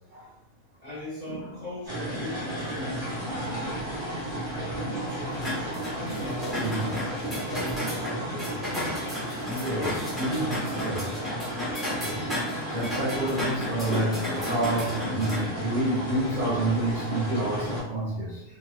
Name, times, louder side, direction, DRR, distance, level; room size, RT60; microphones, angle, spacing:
voice 1, 0.8-3.9 4.5-6.9 7.2-9.2 9.7-10.1, equal, 65° left, -5 dB, 0.4 m, -39 dB
sound 1, 1.9-17.8, right 1 dB, 20° right, 1.1 m, -33 dB
sound 2, 5.4-15.4, left 1 dB, ahead, 0.7 m, -34 dB
voice 2, 6.6-6.9 9.5-9.9 10.2-11.1 12.0-12.3 12.7-18.4, right 2 dB, 70° right, -5 dB, 0.4 m, -29 dB
2.9 x 2.7 x 2.3 m, 0.84 s
omnidirectional pair, 1.5 m